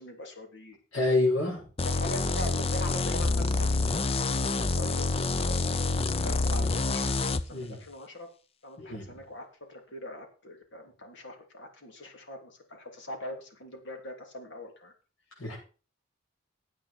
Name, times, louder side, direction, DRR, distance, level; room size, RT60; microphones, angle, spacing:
voice 1, 0.0-0.8 1.8-3.9 4.2-4.4 4.7-8.3 8.6-14.9, left 1 dB, 60° left, 4 dB, 3.1 m, -42 dB
voice 2, 0.9-1.6 7.5-7.8 8.8-9.2 15.4-15.6, left 2 dB, 80° left, -6 dB, 6.9 m, -28 dB
sound 1, 1.8-7.4, left 3 dB, 30° left, 0.6 m, -27 dB
16.0 x 8.9 x 4.4 m, 0.36 s
head